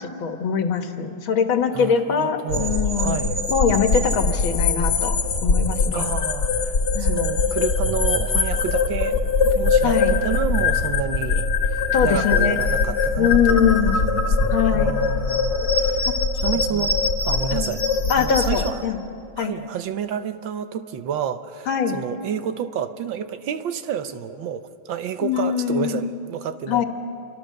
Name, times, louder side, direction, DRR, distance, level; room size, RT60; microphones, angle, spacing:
voice 1, 0.0-3.1 3.5-6.1 6.9-7.3 9.8-10.1 11.9-12.6 13.2-14.0 14.5-14.9 16.1-16.2 16.5-16.8 17.5-17.7 18.1-19.0 19.4-19.5 21.7-22.0 25.2-26.0 26.7-26.8, left 7 dB, 80° left, 6 dB, 2.2 m, -22 dB
voice 2, 1.7-3.5 5.9-6.7 7.0-9.2 9.5-13.6 13.9-17.0 17.3-17.8 18.2-18.8 19.4-26.8, right 8 dB, 75° right, 10 dB, 1.6 m, -30 dB
sound 1, 2.5-18.7, left 4 dB, 50° left, 2.0 m, -22 dB
28.0 x 24.0 x 6.6 m, 2.6 s
omnidirectional pair, 2.2 m